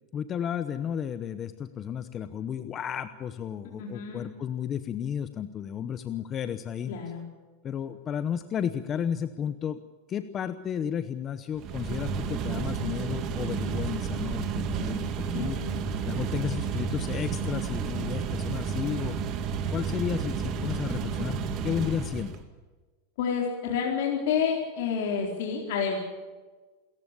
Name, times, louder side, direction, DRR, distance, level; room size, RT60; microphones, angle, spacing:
voice 1, 0.1-6.9 7.6-9.8 10.1-15.6 16.0-19.2 19.7-22.4, left 8 dB, 25° left, 11 dB, 0.9 m, -33 dB
voice 2, 3.8-4.3 6.9-7.2 15.3-15.9 23.2-26.0, left 6 dB, 65° left, 0 dB, 4.3 m, -29 dB
sound 1, 11.6-22.4, right 6 dB, 40° right, 2.4 m, -31 dB
27.5 x 14.5 x 8.4 m, 1.3 s
supercardioid pair, 150°, 0 cm